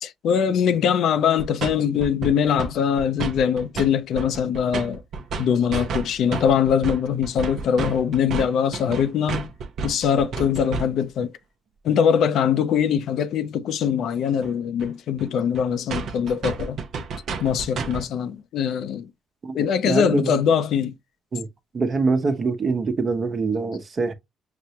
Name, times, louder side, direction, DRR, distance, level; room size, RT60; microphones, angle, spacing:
voice 1, 0.0-5.0 5.4-9.5 9.8-11.3 11.8-16.8 17.4-19.1 19.5-20.9, left 8 dB, 75° left, 0.5 m, -22 dB
sound 1, 1.4-1.7 2.0-2.7 3.0-3.9 4.1-11.1 14.4-14.5 14.8-14.9 15.2-15.3 15.5-15.6 15.9-18.1, right 4 dB, 70° right, 0.7 m, -30 dB
voice 2, 19.8-20.4 21.3-21.5 21.7-24.1, right 4 dB, 45° right, 0.9 m, -24 dB
5.9 x 2.1 x 2.8 m
cardioid pair, 90°, 0 cm